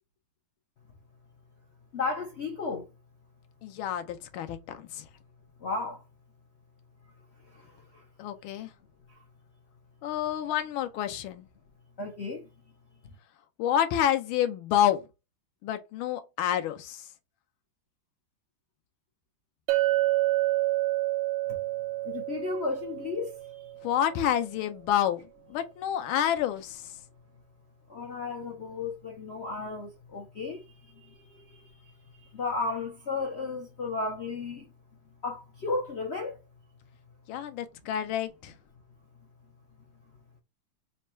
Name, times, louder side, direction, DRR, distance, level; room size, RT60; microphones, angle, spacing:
voice 1, 1.9-2.9 5.6-6.0 7.5-7.6 12.0-12.4 22.0-23.3 27.9-30.6 31.0-31.7 32.3-34.7 35.2-36.4, left 3 dB, 65° left, 0.6 m, -34 dB
voice 2, 3.6-5.0 8.2-8.7 10.0-11.4 13.6-15.0 15.6-17.0 23.8-25.2 25.5-26.9 37.3-38.5, left 10 dB, 90° left, 1.5 m, -28 dB
Chink clink, 19.7-23.9, right 17 dB, 90° right, 1.4 m, -28 dB
4.2 x 2.2 x 4.2 m
omnidirectional pair, 2.2 m